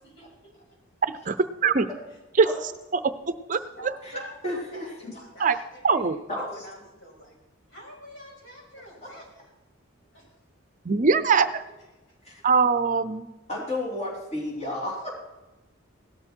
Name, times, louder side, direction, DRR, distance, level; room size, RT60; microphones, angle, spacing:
voice 1, 0.0-0.8 2.1-2.2 3.6-7.3 7.7-9.6 10.0-10.4 11.7-11.8 12.1-12.2, equal, 65° left, -3 dB, 6.7 m, -48 dB
voice 2, 1.1-1.9 2.4-2.5 2.9-3.1 3.5-3.6 5.4-5.5 5.8-6.2 10.8-11.5 12.4-13.3, right 5 dB, 40° right, 12 dB, 0.5 m, -21 dB
voice 3, 4.4-5.1 6.3-6.6 9.0-9.1 12.2-12.4 13.5-15.1, left 1 dB, 30° left, -2 dB, 3.5 m, -32 dB
17.0 x 13.0 x 4.5 m, 1.0 s
head